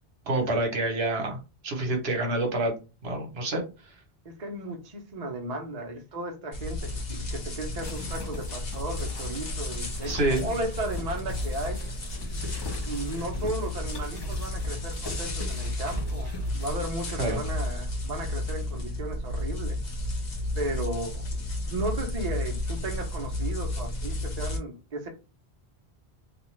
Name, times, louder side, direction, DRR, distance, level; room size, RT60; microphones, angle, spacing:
voice 1, 0.3-2.7 3.0-3.6 10.0-10.4 17.2-17.4, right 2 dB, 70° right, 1.1 m, -27 dB
voice 2, 4.2-11.8 12.8-19.8 20.5-21.2 21.7-25.1, right 1 dB, 45° right, 0.7 m, -35 dB
sound 1, 6.5-24.6, left 1 dB, 60° left, 1.0 m, -32 dB
sound 2, 7.8-16.8, left 1 dB, 25° left, 0.6 m, -42 dB
2.4 x 2.3 x 3.0 m
omnidirectional pair, 1.1 m